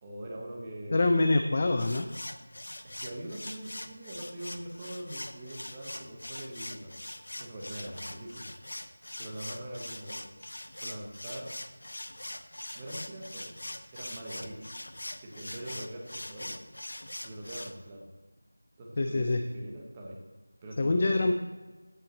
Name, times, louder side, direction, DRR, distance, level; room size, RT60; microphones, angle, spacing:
voice 1, 0.0-1.0 2.8-7.0 7.4-8.5 9.2-10.3 10.8-11.6 12.7-13.5 13.9-14.7 15.2-16.6 17.2-18.1 18.8-20.2 20.6-21.3, right 1 dB, 10° right, -2 dB, 1.0 m, -42 dB
voice 2, 0.9-2.1 19.0-19.4 20.8-21.3, left 2 dB, 25° left, 6 dB, 0.4 m, -25 dB
sound 1, 1.8-17.7, left 1 dB, 70° left, 0.8 m, -42 dB
15.5 x 5.6 x 4.2 m, 1.2 s
figure-of-eight pair, 175°, 0 cm